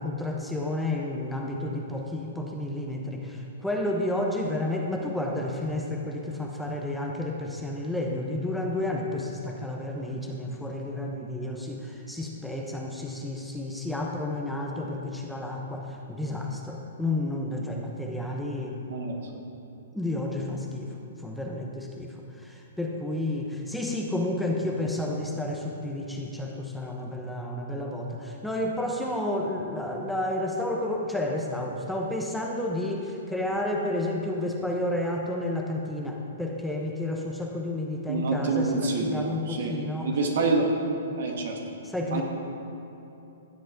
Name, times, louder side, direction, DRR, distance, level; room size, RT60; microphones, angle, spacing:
voice 1, 0.0-18.8 19.9-40.1 41.8-42.2, left 1 dB, ahead, 0 dB, 1.0 m, -31 dB
voice 2, 38.1-39.7 40.0-40.7 41.2-41.5 42.1-42.2, right 3 dB, 65° right, 1 dB, 1.9 m, -27 dB
15.5 x 7.5 x 3.9 m, 2.9 s
hypercardioid pair, 125°, 0 cm